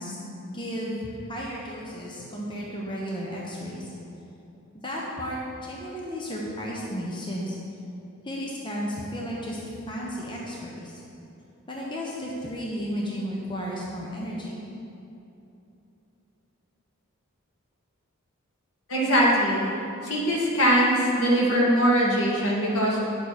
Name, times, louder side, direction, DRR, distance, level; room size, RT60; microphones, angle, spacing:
voice 1, 0.0-3.9 4.8-7.6 8.2-11.0 11.7-14.6, equal, 20° left, -4 dB, 1.0 m, -33 dB
voice 2, 18.9-19.7 20.0-23.0, equal, 75° left, -5 dB, 2.1 m, -21 dB
9.7 x 6.8 x 4.3 m, 2.8 s
head